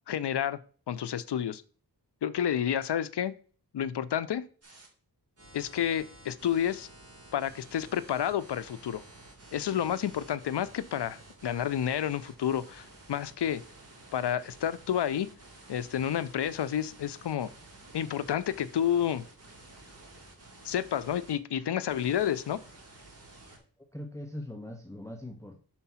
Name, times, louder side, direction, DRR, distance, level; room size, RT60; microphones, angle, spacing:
voice 1, 0.1-0.6 0.9-1.6 2.2-3.4 3.7-4.4 5.5-6.9 7.3-9.0 9.5-13.6 14.1-15.3 15.7-17.5 17.9-19.2 20.6-22.6, left 9 dB, 80° left, 16 dB, 0.6 m, -30 dB
sound 1, 4.6-4.9 5.4-21.4 21.9-23.6, right 2 dB, 35° right, 2.2 m, -52 dB
voice 2, 23.5-25.6, left 1 dB, 5° left, 3 dB, 0.8 m, -42 dB
5.7 x 4.6 x 5.6 m, 0.41 s
wide cardioid pair, 80°, 40 cm